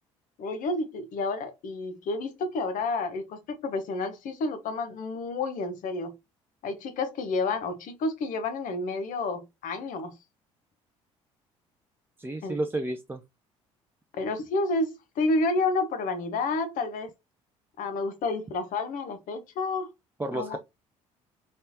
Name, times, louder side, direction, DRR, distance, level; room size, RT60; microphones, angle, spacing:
voice 1, 0.4-6.1 6.6-10.1 12.4-12.6 14.1-17.1 17.8-19.9 20.3-20.6, left 3 dB, 55° left, 1.0 m, -30 dB
voice 2, 12.2-13.2 20.2-20.6, right 2 dB, 15° right, 0.5 m, -31 dB
4.1 x 3.4 x 2.7 m
figure-of-eight pair, 55°, 16 cm